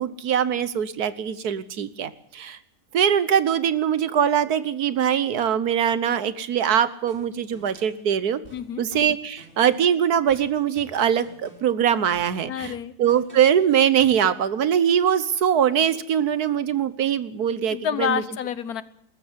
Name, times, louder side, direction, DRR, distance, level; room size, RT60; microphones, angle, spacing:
voice 1, 0.0-2.6 2.9-8.4 8.8-12.7 13.0-18.2, right 9 dB, 75° right, 15 dB, 1.5 m, -22 dB
sound 1, 7.1-8.0 8.4-9.9 10.3-11.8 12.1-13.6 14.0-14.3, right 1 dB, 30° right, 4.8 m, -50 dB
voice 2, 8.5-8.8 12.5-12.9 17.7-18.8, left 8 dB, 70° left, 15 dB, 1.4 m, -28 dB
20.0 x 14.0 x 9.7 m, 0.69 s
omnidirectional pair, 1.7 m